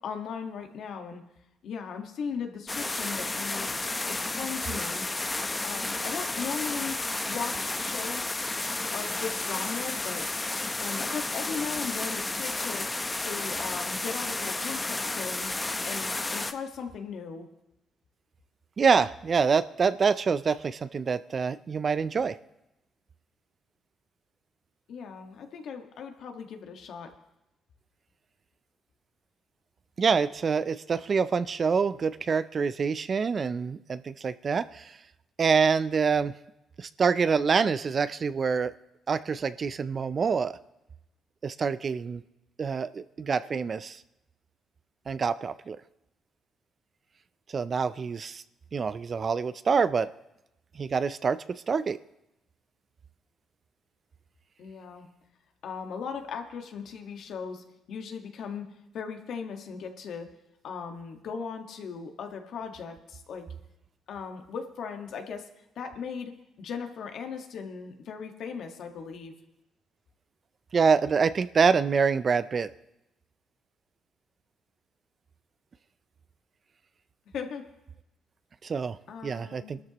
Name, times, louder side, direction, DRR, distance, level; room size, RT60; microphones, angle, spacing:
voice 1, 0.0-1.2 1.6-3.7 4.1-5.1 5.6-7.0 7.2-8.3 8.9-10.3 10.8-12.9 13.2-15.5 15.8-17.5 24.9-27.1 54.6-55.1 55.6-58.6 58.9-60.3 60.6-63.5 64.1-65.5 65.7-69.3 77.3-77.6 79.1-79.8, left 6 dB, 70° left, 4 dB, 1.6 m, -38 dB
sound 1, 2.7-16.5, left 2 dB, 20° left, 0.8 m, -32 dB
voice 2, 18.8-22.4 30.0-35.0 35.4-36.4 36.8-38.7 39.1-40.6 41.4-42.2 42.6-44.0 45.1-45.8 47.5-48.4 48.7-50.1 50.8-52.0 70.7-72.7 78.6-79.0 79.2-79.8, right 5 dB, 45° right, 14 dB, 0.5 m, -26 dB
22.0 x 13.0 x 3.0 m, 0.91 s
cardioid pair, 90°, 0 cm